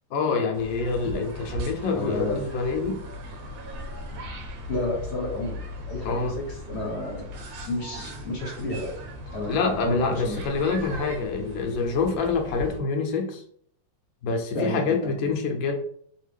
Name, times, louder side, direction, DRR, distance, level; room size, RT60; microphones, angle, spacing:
voice 1, 0.1-3.0 6.0-6.3 9.5-13.4 14.2-15.7, left 4 dB, 80° left, 4 dB, 1.3 m, -26 dB
sound 1, 0.5-12.8, left 1 dB, 80° right, 1.4 m, -38 dB
voice 2, 1.9-2.4 4.7-5.6 5.9-7.2 7.7-8.9 9.3-10.4 14.5-15.1, left 1 dB, 45° left, -2 dB, 0.9 m, -30 dB
3.4 x 2.4 x 3.2 m, 0.63 s
omnidirectional pair, 2.1 m